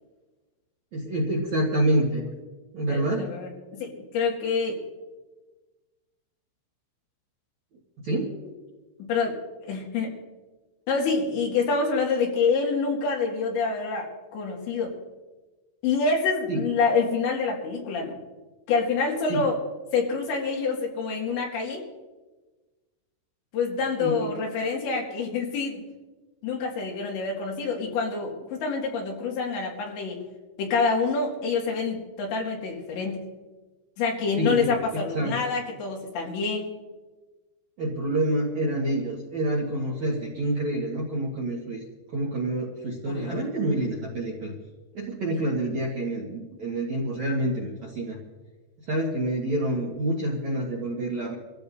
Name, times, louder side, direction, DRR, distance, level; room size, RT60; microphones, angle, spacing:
voice 1, 0.9-2.2 2.7-3.3 8.0-8.4 16.5-16.7 19.3-19.4 24.0-24.3 34.4-35.4 37.8-41.8 42.1-44.5 44.9-48.2 48.8-51.3, right 1 dB, 60° right, -3 dB, 1.9 m, -27 dB
voice 2, 2.9-4.8 9.0-10.1 10.9-15.0 15.8-18.2 18.7-19.6 19.9-21.8 23.5-25.8 26.4-30.2 30.6-33.3 34.0-36.7 43.1-43.4, left 4 dB, 70° left, -1 dB, 4.3 m, -27 dB
26.5 x 15.0 x 2.7 m, 1.2 s
omnidirectional pair, 5.6 m